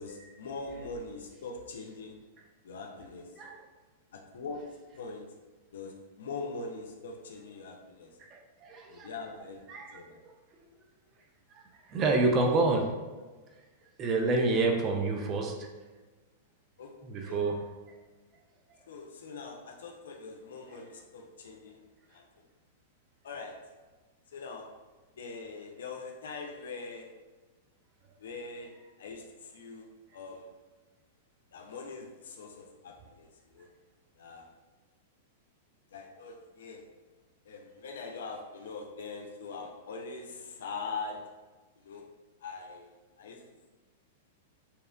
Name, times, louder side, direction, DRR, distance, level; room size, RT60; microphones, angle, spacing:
voice 1, 0.0-2.2 2.6-3.3 4.1-4.6 4.9-5.2 5.7-8.2 8.9-10.2 16.8-16.9 17.2-17.4 18.9-21.8 22.1-22.2 23.2-23.6 24.3-24.7 25.2-27.1 28.2-30.5 31.5-33.7 34.2-34.4 35.9-36.8 37.5-41.2 41.8-42.0 42.4-43.4, left 4 dB, 80° left, 2 dB, 0.3 m, -42 dB
voice 2, 8.2-9.1 9.7-10.3 11.5-13.0 14.0-15.7 17.0-17.6, right 3 dB, 30° right, 2 dB, 0.3 m, -29 dB
2.7 x 2.1 x 2.3 m, 1.3 s
hypercardioid pair, 120°, 0 cm